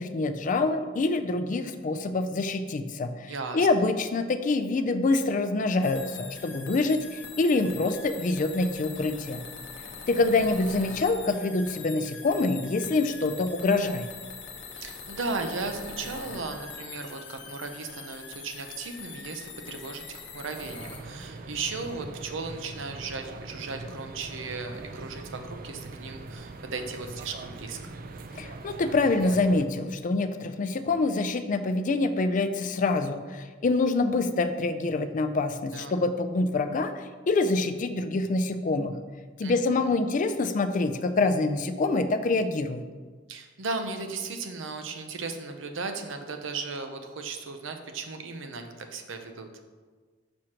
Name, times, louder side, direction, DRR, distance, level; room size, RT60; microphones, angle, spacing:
voice 1, 0.0-9.4 10.1-14.1 28.4-39.0 39.4-42.8, left 3 dB, 40° left, 9 dB, 0.4 m, -26 dB
voice 2, 3.3-3.7 10.3-10.9 14.7-27.8 35.7-36.0 39.4-39.9 43.3-49.5, right 4 dB, 85° right, 6 dB, 0.7 m, -36 dB
sound 1, 5.8-21.0, left 5 dB, 65° left, 0.9 m, -42 dB
sound 2, 20.6-29.7, right 2 dB, 45° right, 0.4 m, -42 dB
6.2 x 6.2 x 2.9 m, 1.4 s
head